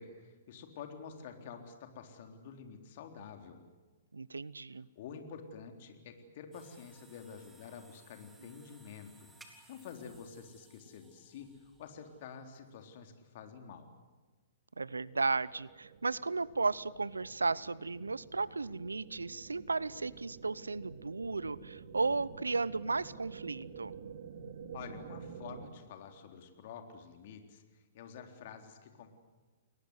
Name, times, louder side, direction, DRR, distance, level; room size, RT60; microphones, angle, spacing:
voice 1, 0.0-3.6 5.0-9.3 9.7-13.9 24.7-29.1, left 6 dB, 50° left, 4 dB, 3.7 m, -49 dB
voice 2, 4.1-4.9 14.8-23.9, right 3 dB, 85° right, 21 dB, 0.7 m, -34 dB
sound 1, 6.5-13.3, right 2 dB, 5° right, 3.6 m, -62 dB
sound 2, 14.9-25.7, right 6 dB, 60° right, 2.9 m, -50 dB
30.0 x 21.5 x 8.1 m, 1.3 s
figure-of-eight pair, 120°, 0 cm